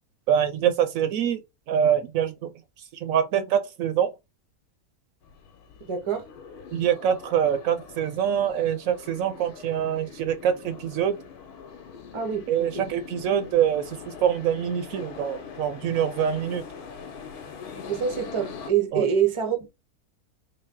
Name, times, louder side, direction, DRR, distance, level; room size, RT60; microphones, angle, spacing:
voice 1, 0.3-1.4 1.7-2.5 3.0-4.1 6.7-11.2 12.5-16.6 18.9-19.1, right 9 dB, 70° right, 0.9 m, -25 dB
sound 1, 5.2-18.7, left 6 dB, 80° left, 1.3 m, -43 dB
voice 2, 5.8-6.3 12.1-12.8 17.9-19.7, right 8 dB, 40° right, 0.4 m, -26 dB
3.9 x 2.1 x 3.6 m
omnidirectional pair, 1.6 m